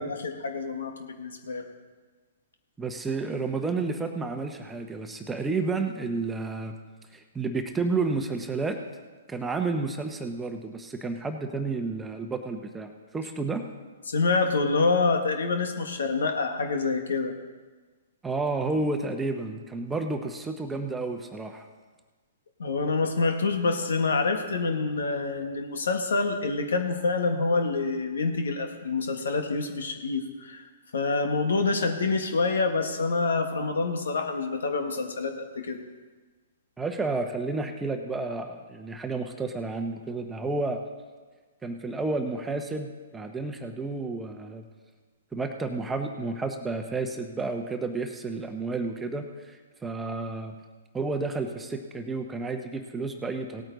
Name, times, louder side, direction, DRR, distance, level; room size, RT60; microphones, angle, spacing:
voice 1, 0.0-1.7 14.1-17.3 22.6-30.7 30.9-35.8, left 3 dB, 75° left, 5 dB, 1.6 m, -27 dB
voice 2, 2.8-6.8 7.1-8.8 9.3-13.6 18.2-21.7 36.8-40.8 41.6-44.6 45.3-50.5 50.9-53.6, right 3 dB, 10° right, 5 dB, 1.0 m, -31 dB
17.5 x 8.9 x 4.0 m, 1.4 s
hypercardioid pair, 125°, 0 cm